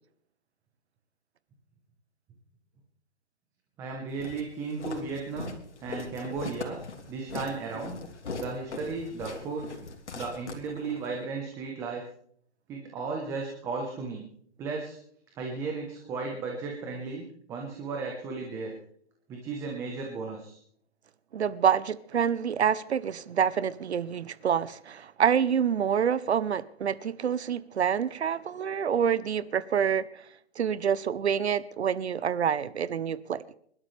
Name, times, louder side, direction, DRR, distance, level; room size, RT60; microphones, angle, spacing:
voice 1, 3.8-5.5 5.8-6.8 7.1-8.0 8.4-9.7 10.1-12.0 12.7-14.2 14.6-15.0 15.4-17.2 17.5-18.7 19.3-20.6, right 4 dB, 10° right, 1.0 m, -35 dB
Walk footsteps, 4.2-11.1, left 4 dB, 80° left, 3.2 m, -40 dB
voice 2, 21.3-30.0 30.6-33.5, right 8 dB, 70° right, 0.9 m, -27 dB
26.5 x 12.0 x 3.4 m
hypercardioid pair, 165°, 34 cm